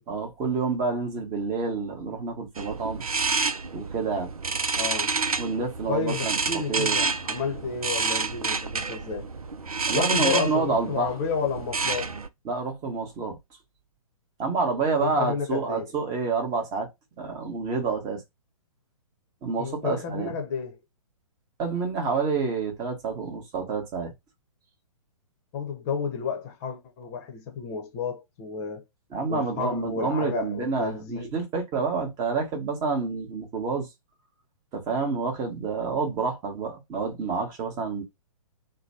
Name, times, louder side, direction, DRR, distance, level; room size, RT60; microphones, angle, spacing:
voice 1, 0.1-3.0 3.7-4.3 5.4-6.4 6.7-7.0 9.9-11.1 12.4-13.4 14.4-16.9 17.2-18.2 19.4-20.3 21.6-24.1 29.1-33.9 34.7-38.0, right 4 dB, 20° right, 1.0 m, -28 dB
sound 1, 2.5-12.3, right 4 dB, 80° right, 0.5 m, -29 dB
voice 2, 4.7-5.1 5.9-9.3 9.9-12.1 15.0-15.9 19.6-20.8 25.5-28.8 29.3-31.3, left 6 dB, 25° left, 0.8 m, -31 dB
3.0 x 2.2 x 4.1 m
figure-of-eight pair, 125°, 18 cm